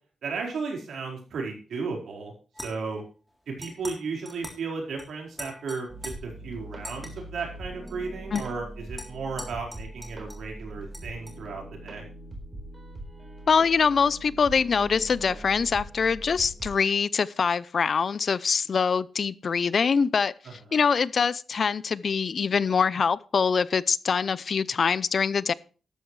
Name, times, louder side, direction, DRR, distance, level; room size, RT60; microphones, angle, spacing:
voice 1, 0.2-2.3 2.6-3.0 3.5-12.0, right 4 dB, 75° right, 4.6 m, -34 dB
sound 1, 2.5-3.0 3.6-4.0 4.3-4.6 5.0-5.1 5.4-6.1 6.8-7.1 7.9-8.0 8.3-8.5 9.0-10.5 10.9-11.4, equal, 5° left, 3.4 m, -42 dB
sound 2, 5.9-16.7, right 1 dB, 25° right, 4.2 m, -42 dB
voice 2, 13.5-25.5, left 5 dB, 45° left, 0.5 m, -24 dB
13.5 x 12.0 x 3.2 m
wide cardioid pair, 150°, 0 cm